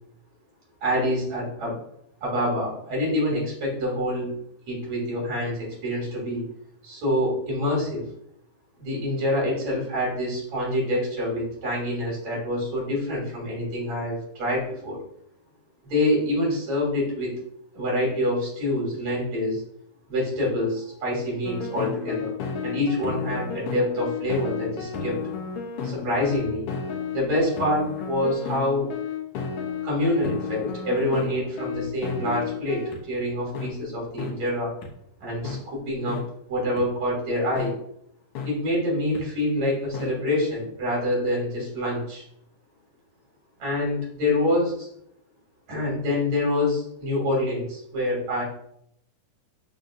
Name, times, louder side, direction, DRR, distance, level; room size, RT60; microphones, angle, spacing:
voice 1, 0.8-1.8 2.2-4.3 4.7-6.5 6.8-8.0 8.8-15.0 15.9-17.4 17.7-19.6 20.1-22.3 22.6-25.2 25.8-26.7 27.1-28.9 29.8-34.7 35.2-36.2 36.5-37.7 38.4-42.2 43.6-44.9 45.7-48.4, left 1 dB, 55° right, -4 dB, 4.0 m, -26 dB
sound 1, 21.4-33.0 33.5-33.7 34.2-34.3 34.8-34.9 35.4-35.6 36.1-36.2 36.8-36.9 37.6-37.7 38.3-38.5 39.1-39.2 39.9-40.1, left 6 dB, 80° left, 1.3 m, -32 dB
11.0 x 3.8 x 2.6 m, 0.73 s
omnidirectional pair, 3.7 m